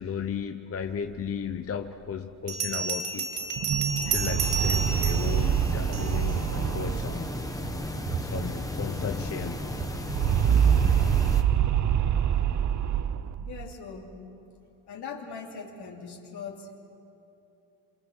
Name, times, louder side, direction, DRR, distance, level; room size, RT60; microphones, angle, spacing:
voice 1, 0.0-3.4 4.1-7.4 8.2-9.7, left 7 dB, 30° left, 6 dB, 0.8 m, -35 dB
Bell, 1.3-1.4 2.5-6.4, right 5 dB, 85° right, 2.2 m, -31 dB
sound 1, 3.4-8.7 9.0-9.1 9.4-13.7, right 9 dB, 40° right, 0.6 m, -26 dB
sound 2, 4.4-11.4, left 1 dB, 5° left, 1.4 m, -34 dB
voice 2, 13.4-14.1 14.9-16.7, left 5 dB, 55° left, -2 dB, 3.1 m, -40 dB
27.5 x 27.0 x 6.3 m, 2.8 s
cardioid pair, 130°, 48 cm